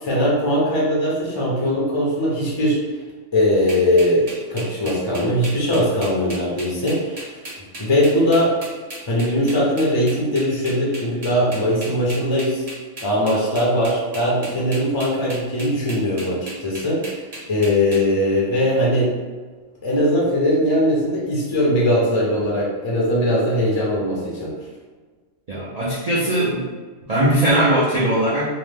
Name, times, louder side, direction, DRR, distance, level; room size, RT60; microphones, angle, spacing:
voice 1, 0.0-2.8 3.3-7.4 7.8-8.5 9.1-12.6 13.0-17.2 17.5-19.1 19.8-24.5, equal, 50° left, -5 dB, 0.3 m, -20 dB
sound 1, 3.7-18.0, right 1 dB, 35° right, 0.6 m, -35 dB
voice 2, 25.5-26.7 27.1-28.5, right 1 dB, 80° right, -9 dB, 0.3 m, -19 dB
2.8 x 2.1 x 3.3 m, 1.4 s
omnidirectional pair, 1.5 m